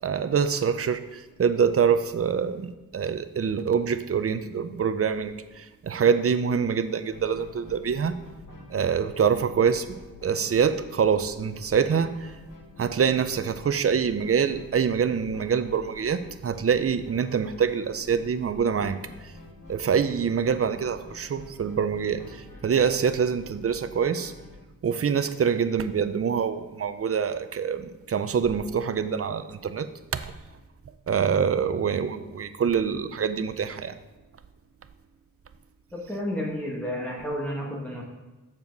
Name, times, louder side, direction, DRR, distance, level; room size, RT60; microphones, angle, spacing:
voice 1, 0.0-8.2 8.7-9.9 10.2-12.3 12.8-19.0 19.7-24.3 24.8-29.9 30.1-30.3 31.1-33.9, right 7 dB, 45° right, 11 dB, 0.5 m, -25 dB
sound 1, 7.1-24.6, left 2 dB, 70° left, 1.9 m, -47 dB
voice 2, 35.9-38.0, equal, 5° left, -4 dB, 1.3 m, -31 dB
7.3 x 7.1 x 3.9 m, 1.1 s
wide cardioid pair, 125°, 34 cm